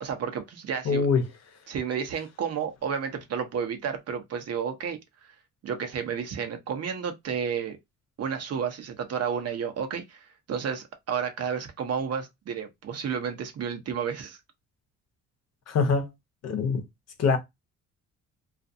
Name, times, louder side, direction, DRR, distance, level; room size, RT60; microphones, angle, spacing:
voice 1, 0.0-1.1 1.7-5.3 5.6-7.8 8.2-14.4, right 7 dB, 55° right, 0.9 m, -31 dB
voice 2, 0.8-1.2 15.7-16.1 16.4-16.8 17.2-17.4, left 5 dB, 55° left, 0.9 m, -23 dB
2.5 x 2.3 x 2.6 m
cardioid pair, 90°, 30 cm